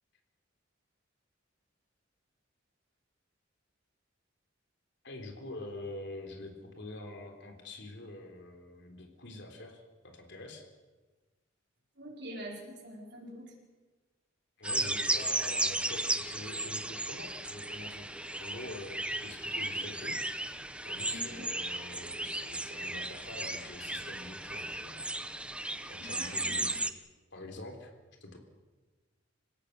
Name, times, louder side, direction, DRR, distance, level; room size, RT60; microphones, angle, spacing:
voice 1, 5.0-10.7 14.6-20.5 20.9-25.0 25.9-26.7 27.3-27.9 28.2-28.4, left 2 dB, 60° left, 3 dB, 3.5 m, -46 dB
voice 2, 12.0-13.5 21.1-21.5 26.0-26.6, equal, 60° right, -1 dB, 5.0 m, -45 dB
sound 1, 14.6-26.9, right 2 dB, 5° right, 0.8 m, -35 dB
27.5 x 16.5 x 6.7 m, 1.3 s
head